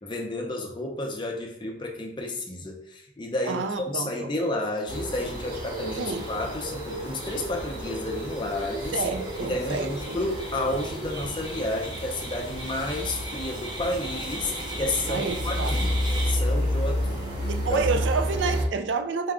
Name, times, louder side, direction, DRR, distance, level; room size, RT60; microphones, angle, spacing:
voice 1, 0.0-9.0 9.4-16.0 16.2-17.3 17.7-17.9, left 1 dB, 25° left, 1 dB, 0.6 m, -31 dB
voice 2, 3.5-4.3 6.0-6.3 8.9-10.2 15.1-15.8 17.5-19.3, right 4 dB, 80° right, 8 dB, 0.4 m, -29 dB
sound 1, 4.9-18.7, equal, 55° right, 1.3 m, -31 dB
sound 2, 6.1-16.3, right 1 dB, 25° right, 0.9 m, -40 dB
4.6 x 2.2 x 3.6 m, 0.72 s
head